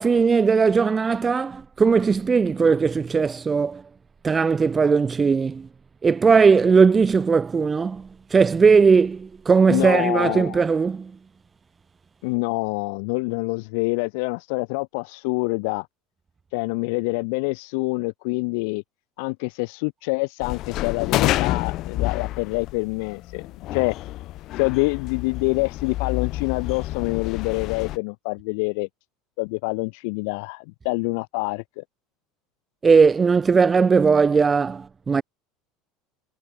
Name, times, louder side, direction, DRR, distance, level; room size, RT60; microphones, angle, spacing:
voice 1, 0.0-3.8 4.2-5.7 6.0-11.1 32.8-35.2, right 5 dB, 25° right, 1.0 m, -18 dB
voice 2, 9.7-10.6 12.2-15.9 16.5-18.8 19.2-23.4 23.7-23.9 24.5-28.9 29.4-31.8, left 31 dB, 70° left, 1.5 m, -26 dB
sound 1, 20.4-28.0, left 16 dB, 55° left, 1.7 m, -28 dB
hypercardioid pair, 90°, 0 cm